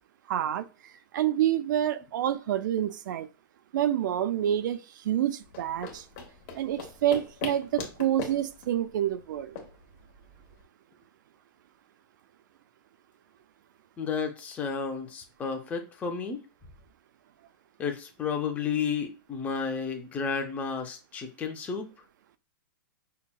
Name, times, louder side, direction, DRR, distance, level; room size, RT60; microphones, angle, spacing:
voice 1, 0.3-0.6 1.1-3.3 3.7-4.8 5.1-6.0 6.5-9.6, right 11 dB, 60° right, 0.4 m, -27 dB
sound 1, 5.4-10.6, left 5 dB, 35° left, 0.9 m, -41 dB
voice 2, 14.0-16.4 17.8-21.9, left 6 dB, 10° left, 0.5 m, -32 dB
5.6 x 2.1 x 2.2 m
hypercardioid pair, 150°, 12 cm